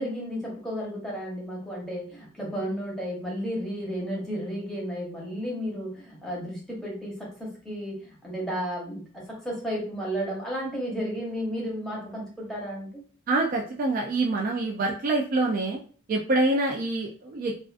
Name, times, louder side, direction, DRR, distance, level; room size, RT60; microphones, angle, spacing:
voice 1, 0.0-13.0, equal, ahead, -4 dB, 0.8 m, -33 dB
voice 2, 13.3-15.8 16.1-17.5, right 2 dB, 45° right, 0 dB, 0.3 m, -25 dB
2.4 x 2.3 x 2.4 m, 0.42 s
head